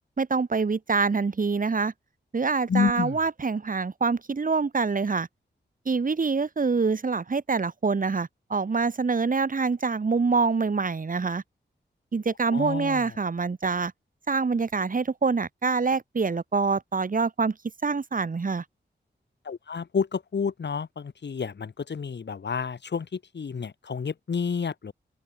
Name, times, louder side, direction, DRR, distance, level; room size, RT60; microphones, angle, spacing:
voice 1, 0.2-1.9 2.3-5.3 5.9-11.4 12.1-13.9 14.3-17.5 17.8-18.6, right 4 dB, 45° right, 4.2 m, -25 dB
voice 2, 2.7-3.2 12.5-13.1 19.4-24.9, left 6 dB, 70° left, 5.5 m, -30 dB
open air
wide cardioid pair, 145°, 19 cm